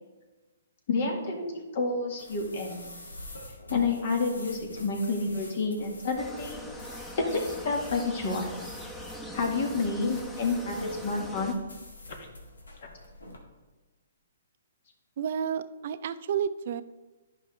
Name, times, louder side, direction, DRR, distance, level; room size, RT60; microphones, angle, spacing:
voice 1, 0.9-1.5 1.7-2.9 3.7-6.6 7.2-8.5 9.3-11.6, left 3 dB, 55° left, 2 dB, 1.7 m, -29 dB
sound 1, 2.2-13.4, left 1 dB, 90° left, 1.7 m, -47 dB
sound 2, 6.2-11.5, equal, 10° left, 0.9 m, -42 dB
voice 2, 15.2-16.8, right 8 dB, 55° right, 13 dB, 0.4 m, -31 dB
10.5 x 5.4 x 3.3 m, 1.2 s
hypercardioid pair, 135°, 0 cm